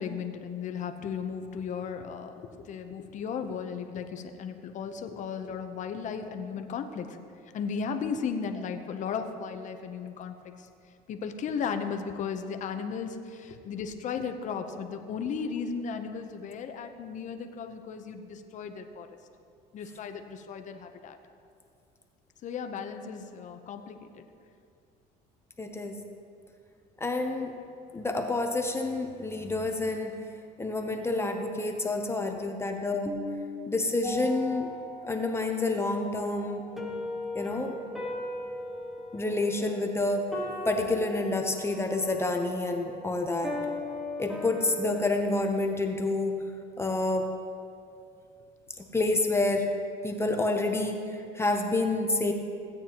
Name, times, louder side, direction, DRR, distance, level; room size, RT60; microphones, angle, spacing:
voice 1, 0.0-7.2 7.5-10.7 11.1-19.1 19.7-21.2 22.4-24.2, left 6 dB, 45° left, 6 dB, 0.8 m, -35 dB
voice 2, 25.6-26.0 27.0-27.6 27.9-30.2 30.6-34.7 35.0-36.6 37.3-37.8 39.1-40.4 40.6-43.6 44.2-46.4 46.8-47.3 48.8-49.7 50.0-52.3, left 2 dB, 15° left, 4 dB, 0.7 m, -28 dB
sound 1, 34.0-45.1, left 2 dB, ahead, 1.2 m, -39 dB
16.0 x 8.9 x 2.9 m, 2.4 s
cardioid pair, 120°, 17 cm